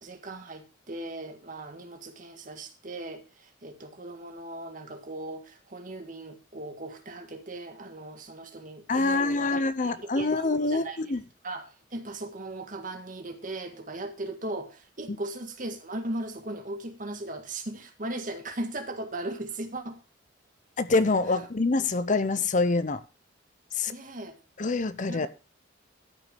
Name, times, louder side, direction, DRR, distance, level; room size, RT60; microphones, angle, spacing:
voice 1, 0.0-11.0 11.4-20.0 21.3-21.4 23.9-24.4 25.1-25.3, right 2 dB, 45° right, 6 dB, 1.7 m, -38 dB
voice 2, 8.9-11.2 15.1-15.2 20.8-23.0 23.8-23.9 24.6-25.3, left 3 dB, 40° left, 14 dB, 0.7 m, -25 dB
13.0 x 6.0 x 5.3 m, 0.33 s
head